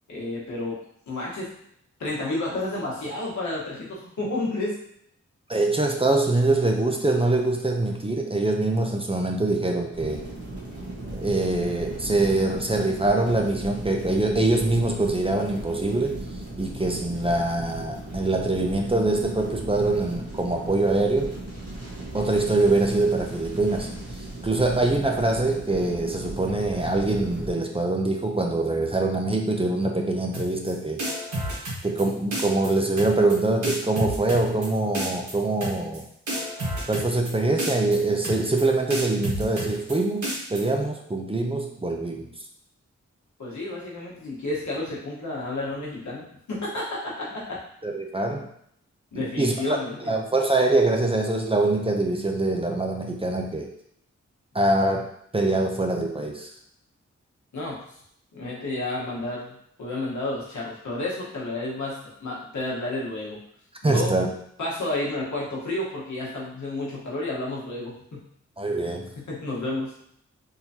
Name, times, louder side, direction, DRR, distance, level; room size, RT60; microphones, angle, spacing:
voice 1, 0.1-0.8 1.1-1.5 2.0-4.8 43.4-47.6 49.1-50.1 57.5-57.8 58.3-63.4 63.9-64.1 64.6-68.2 69.2-69.9, left 2 dB, 80° left, -5 dB, 1.3 m, -31 dB
voice 2, 5.5-10.2 11.1-16.2 16.6-21.3 22.1-23.9 24.4-31.0 31.8-36.0 36.9-42.3 47.8-48.5 49.1-49.8 50.1-53.7 54.5-55.1 55.3-56.5 63.8-64.3 68.6-69.1, right 2 dB, 20° right, 2 dB, 0.6 m, -24 dB
sound 1, 9.9-27.5, right 1 dB, 55° right, 1.3 m, -37 dB
sound 2, 30.3-30.7 31.0-32.0 32.3-32.7 33.0-33.4 33.6-34.7 34.9-35.3 35.6-36.0 36.3-37.3 37.6-38.0 38.2-38.6 38.9-39.9 40.2-40.6, right 1 dB, 85° right, 1.3 m, -30 dB
3.8 x 3.0 x 2.8 m, 0.70 s
cardioid pair, 50°, 29 cm